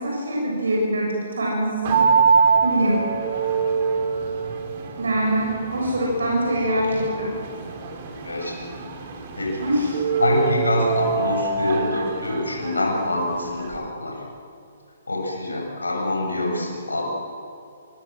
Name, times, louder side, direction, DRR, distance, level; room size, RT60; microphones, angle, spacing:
voice 1, 0.0-2.0 2.6-3.0 5.0-7.7 9.6-9.9, right 1 dB, 70° right, -2 dB, 7.7 m, -24 dB
sound 1, 1.8-13.8, right 5 dB, 40° right, 4.8 m, -25 dB
voice 2, 8.2-8.6 9.3-9.7 10.2-14.2 15.1-17.0, left 1 dB, 80° left, 0 dB, 7.3 m, -25 dB
26.0 x 24.0 x 7.9 m, 2.6 s
figure-of-eight pair, 125°, 0 cm